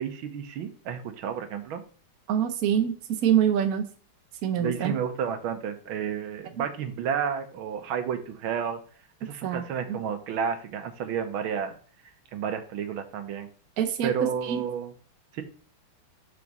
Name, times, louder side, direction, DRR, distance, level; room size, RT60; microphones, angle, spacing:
voice 1, 0.0-1.8 4.6-8.8 9.2-11.8 12.3-13.5 14.0-14.9 15.3-15.4, right 7 dB, 75° right, 7 dB, 1.6 m, -31 dB
voice 2, 2.3-3.9 4.4-4.9 6.6-6.7 9.4-10.0 13.8-14.1 14.4-14.6, right 9 dB, 60° right, 5 dB, 1.0 m, -25 dB
5.9 x 4.9 x 4.0 m, 0.42 s
omnidirectional pair, 2.4 m